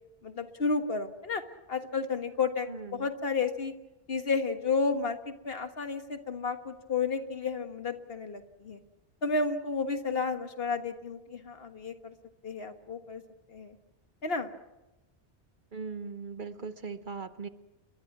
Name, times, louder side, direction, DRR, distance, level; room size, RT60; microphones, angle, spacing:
voice 1, 0.2-1.4 1.7-3.7 4.1-8.8 9.2-12.1 12.4-13.2 13.5-13.8 14.2-14.5, left 4 dB, 60° left, 7 dB, 1.7 m, -32 dB
voice 2, 2.7-3.1 15.7-17.5, right 5 dB, 50° right, 10 dB, 1.2 m, -39 dB
29.0 x 22.5 x 6.0 m, 1.0 s
omnidirectional pair, 1.1 m